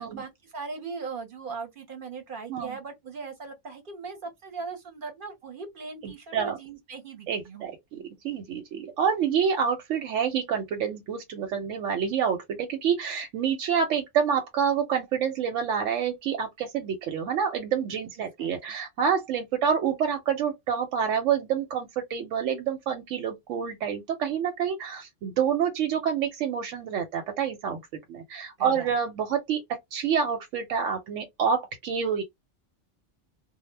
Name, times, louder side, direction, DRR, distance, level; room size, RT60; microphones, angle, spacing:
voice 1, 0.0-7.7 18.4-18.5 28.6-29.0, right 4 dB, 55° right, 0.7 m, -39 dB
voice 2, 6.0-6.6 7.3-27.8 28.1-32.2, right 7 dB, 90° right, 0.9 m, -28 dB
2.0 x 2.0 x 3.2 m
omnidirectional pair, 1.2 m